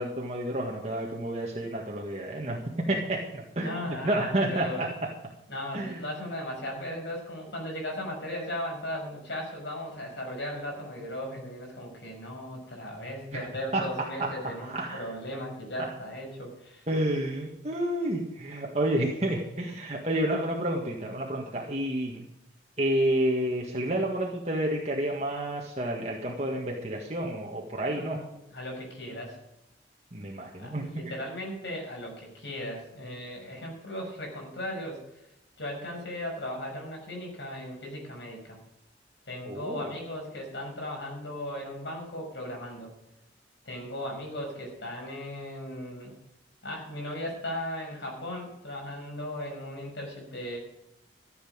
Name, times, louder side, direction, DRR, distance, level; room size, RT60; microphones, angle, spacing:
voice 1, 0.0-2.6 2.9-4.9 5.7-6.0 13.3-13.4 13.7-13.8 14.2-14.3 14.6-15.0 16.9-22.2 22.8-28.2 30.1-31.2 39.4-39.9, right 1 dB, 35° right, -1 dB, 1.8 m, -30 dB
voice 2, 3.6-4.8 5.5-16.8 27.9-29.4 30.6-35.0 35.6-38.6 39.3-42.9 43.7-46.2 46.6-50.6, left 1 dB, 70° left, 0 dB, 5.9 m, -37 dB
14.5 x 8.1 x 6.5 m, 0.90 s
head